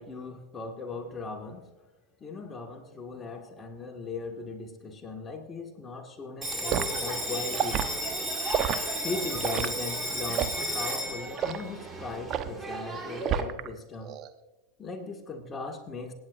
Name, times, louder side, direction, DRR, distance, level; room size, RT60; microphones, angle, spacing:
voice 1, 0.0-1.7 2.2-7.8 8.6-8.8 9.0-14.2 14.8-16.1, left 3 dB, 25° left, 3 dB, 1.8 m, -38 dB
Bell, 6.4-13.4, right 1 dB, 15° right, 2.0 m, -33 dB
Liquid, 6.7-6.9 7.5-7.9 8.5-8.8 9.4-9.7 10.3-10.6 11.4-11.6 12.3-12.6 13.2-13.7 14.0-14.3, right 10 dB, 40° right, 0.9 m, -29 dB
26.5 x 9.6 x 2.5 m, 1.0 s
hypercardioid pair, 85°, 0 cm